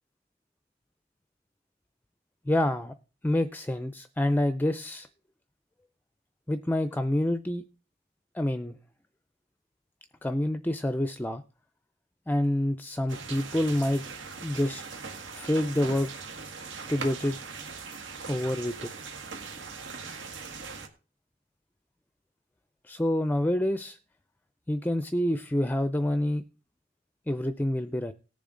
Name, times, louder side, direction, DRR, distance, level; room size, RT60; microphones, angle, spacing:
voice 1, 2.5-2.9 3.2-5.1 6.5-7.6 8.3-8.8 10.2-11.4 12.3-14.0 14.4-14.8 15.3-16.1 16.9-17.4 18.3-18.9 22.9-24.0 24.7-26.4 27.3-28.1, left 1 dB, 10° left, 11 dB, 0.4 m, -27 dB
sound 1, 13.1-20.9, right 5 dB, 80° right, 1.8 m, -40 dB
18.0 x 7.0 x 3.8 m, 0.34 s
head